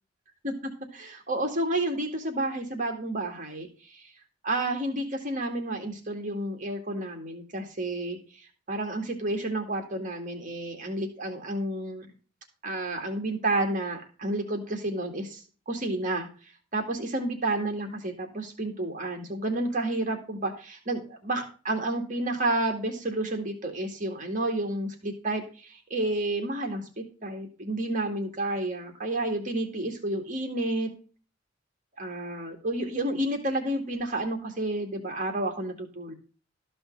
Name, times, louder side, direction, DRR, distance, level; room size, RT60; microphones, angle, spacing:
voice 1, 0.4-4.1 4.4-8.4 8.7-12.1 12.6-16.3 16.7-30.9 32.0-36.1, right 1 dB, 40° right, 4 dB, 2.0 m, -30 dB
13.5 x 5.6 x 5.3 m, 0.36 s
head